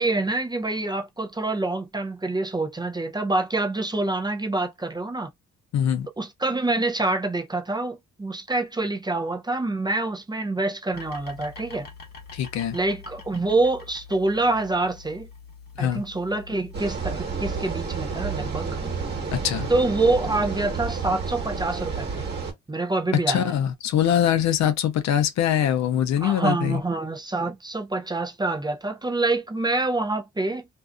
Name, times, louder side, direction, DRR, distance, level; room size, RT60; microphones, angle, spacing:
voice 1, 0.0-5.3 6.2-11.9 12.7-15.3 15.8-18.7 19.7-22.2 22.7-23.4 26.2-30.7, right 2 dB, 15° right, 0.5 m, -26 dB
voice 2, 5.7-6.1 12.3-12.8 15.8-16.0 19.3-19.7 23.3-26.8, left 10 dB, 65° left, 0.6 m, -23 dB
sound 1, 10.9-16.8, left 5 dB, 35° left, 1.0 m, -45 dB
sound 2, 16.7-22.5, right 5 dB, 35° right, 1.3 m, -30 dB
2.6 x 2.4 x 2.2 m
cardioid pair, 90°, 30 cm